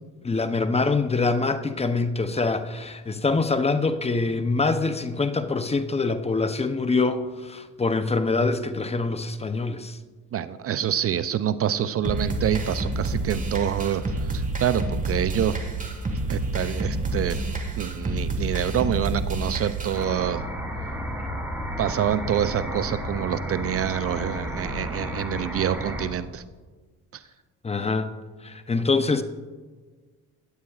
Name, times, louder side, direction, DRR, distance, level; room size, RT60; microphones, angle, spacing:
voice 1, 0.2-10.0 27.6-28.1 28.4-29.2, left 3 dB, 20° left, 0.6 m, -24 dB
voice 2, 10.3-14.0 14.3-15.6 16.3-17.4 17.8-20.4 21.8-26.4 27.1-27.2, right 10 dB, 45° right, 0.5 m, -26 dB
sound 1, 12.0-20.0, right 2 dB, 25° right, 1.5 m, -28 dB
sound 2, 19.9-26.1, equal, 5° right, 3.1 m, -32 dB
16.0 x 9.6 x 2.4 m
cardioid pair, 85°, 33 cm